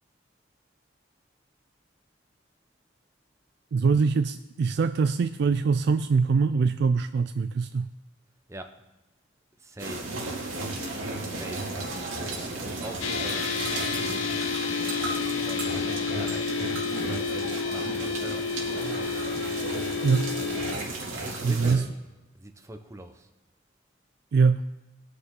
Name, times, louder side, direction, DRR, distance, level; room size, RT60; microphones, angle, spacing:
voice 1, 3.7-7.9 20.0-20.3 21.4-21.9 24.3-24.6, right 5 dB, 55° right, 10 dB, 0.3 m, -23 dB
voice 2, 8.5-8.8 9.6-10.2 11.2-14.4 15.3-19.0 21.1-21.9 22.3-23.3, right 1 dB, 15° right, 6 dB, 0.7 m, -43 dB
sound 1, 9.8-21.7, right 2 dB, 80° right, 2.5 m, -34 dB
sound 2, 13.0-20.8, left 5 dB, 70° left, 0.9 m, -30 dB
20.0 x 6.6 x 3.7 m, 1.1 s
head